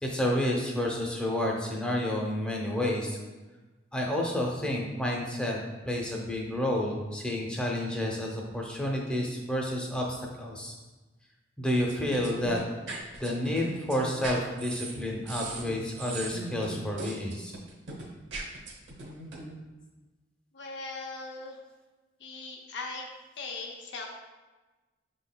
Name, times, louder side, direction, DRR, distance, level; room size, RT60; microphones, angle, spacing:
voice 1, 0.0-3.2 3.9-5.6 5.9-10.7 11.6-12.6 13.2-17.5, left 1 dB, 5° left, -1 dB, 0.6 m, -30 dB
sound 1, 11.9-19.5, right 2 dB, 70° right, 0.9 m, -39 dB
voice 2, 20.5-21.6 22.2-23.1 23.4-24.1, left 3 dB, 70° left, 1 dB, 0.6 m, -39 dB
5.9 x 3.8 x 2.2 m, 1.2 s
head